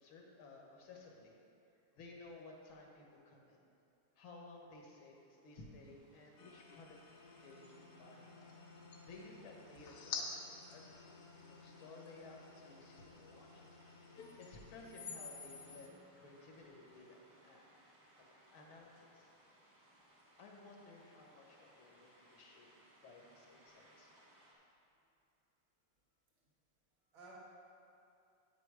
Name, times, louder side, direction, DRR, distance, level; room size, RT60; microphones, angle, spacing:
voice 1, 0.0-1.4 2.0-3.6 4.2-7.0 7.4-8.3 9.0-11.1 11.5-13.8 14.4-17.6 18.2-19.3 20.4-22.7 23.0-24.1, left 2 dB, 80° left, 0 dB, 2.0 m, -56 dB
sound 1, 5.1-24.5, right 1 dB, 55° right, 2.4 m, -67 dB
sound 2, 6.4-15.9, left 4 dB, 65° left, 1.3 m, -51 dB
voice 2, 13.3-13.7 27.1-27.3, right 3 dB, 80° right, -6 dB, 2.5 m, -59 dB
8.7 x 6.9 x 4.8 m, 2.7 s
omnidirectional pair, 2.2 m